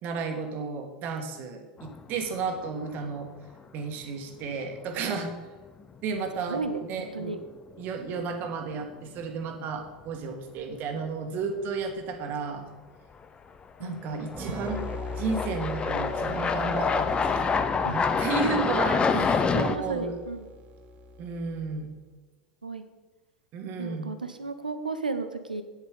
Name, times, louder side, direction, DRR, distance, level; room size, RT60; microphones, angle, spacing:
voice 1, 0.0-3.3 3.7-5.3 6.0-6.6 6.9-7.3 7.8-12.6 13.8-14.8 15.2-20.2 21.2-21.9 23.5-24.1, right 4 dB, 45° right, 4 dB, 1.5 m, -33 dB
sound 1, 1.8-2.4 2.8-2.9 5.8-5.9 7.2-7.5 7.8-7.9 13.2-13.3 14.1-19.8, left 5 dB, 25° left, 0.7 m, -27 dB
voice 2, 6.5-6.8 7.1-7.4 13.8-14.0 17.8-17.9 19.1-20.5 22.6-22.8 23.8-25.6, right 3 dB, 90° right, 10 dB, 0.7 m, -33 dB
sound 2, 14.3-21.9, left 2 dB, 30° right, 0.9 m, -40 dB
9.1 x 7.4 x 5.0 m, 1.3 s
figure-of-eight pair, 85°, 4 cm